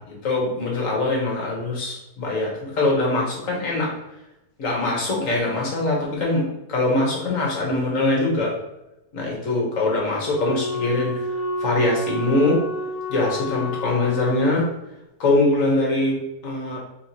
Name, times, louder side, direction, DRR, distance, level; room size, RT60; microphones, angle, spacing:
voice 1, 0.1-3.9 4.6-8.5 9.1-11.1 11.6-12.6 13.1-14.7 15.2-16.8, left 2 dB, 60° left, -2 dB, 1.4 m, -23 dB
Wind instrument woodwind instrument, 10.3-14.6, left 1 dB, 40° left, 0.5 m, -29 dB
4.5 x 2.9 x 2.8 m, 0.90 s
omnidirectional pair, 1.6 m